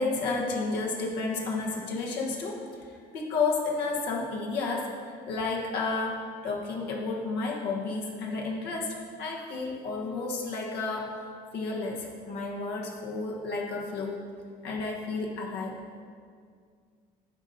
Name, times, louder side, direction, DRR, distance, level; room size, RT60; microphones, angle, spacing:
voice 1, 0.0-11.3 11.5-14.2 14.6-15.7, left 3 dB, 80° left, -1 dB, 1.2 m, -31 dB
9.7 x 5.2 x 4.1 m, 2.1 s
cardioid pair, 110°, 17 cm